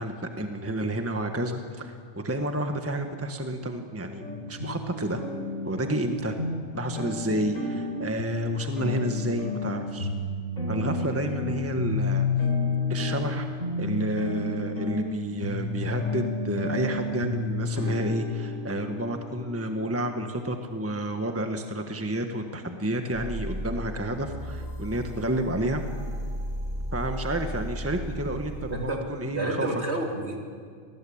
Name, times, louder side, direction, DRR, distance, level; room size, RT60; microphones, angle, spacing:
voice 1, 0.0-5.2 5.6-6.3 6.7-10.1 10.7-12.3 12.9-13.5 13.8-25.8 26.9-29.7, right 1 dB, 10° right, 5 dB, 1.4 m, -30 dB
sound 1, 4.2-20.4, left 3 dB, 75° left, 5.3 m, -31 dB
sound 2, 23.1-28.9, equal, 90° right, 7.2 m, -35 dB
voice 2, 29.3-30.4, right 2 dB, 55° right, 1 dB, 3.5 m, -30 dB
26.5 x 19.5 x 8.8 m, 2.1 s
omnidirectional pair, 1.4 m